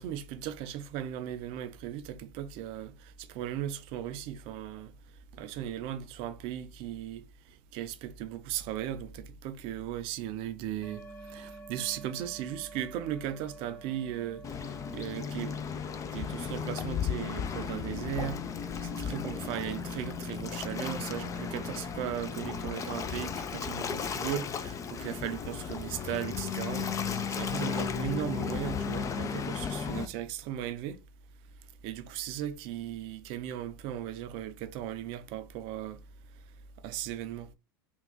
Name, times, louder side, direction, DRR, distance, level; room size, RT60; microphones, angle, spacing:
voice 1, 0.0-4.9 5.3-15.6 16.1-18.5 18.8-26.9 27.3-31.0 31.8-36.0 36.8-37.5, right 11 dB, 55° right, 0.6 m, -37 dB
sound 1, 10.8-15.6, right 3 dB, 80° left, 1.0 m, -49 dB
Waves surf, 14.4-30.0, left 7 dB, 30° left, 0.5 m, -35 dB
3.5 x 2.3 x 3.8 m
hypercardioid pair, 85°, 12 cm